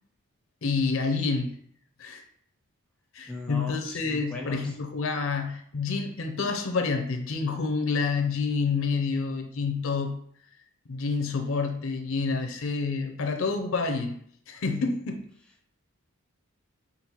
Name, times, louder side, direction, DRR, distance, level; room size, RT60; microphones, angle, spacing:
voice 1, 0.6-1.6 2.0-2.2 3.1-10.2 10.9-14.2 14.5-15.3, left 4 dB, 60° left, 5 dB, 0.5 m, -28 dB
voice 2, 3.3-4.6, left 2 dB, 5° left, 0 dB, 0.5 m, -38 dB
5.2 x 2.4 x 2.9 m, 0.63 s
head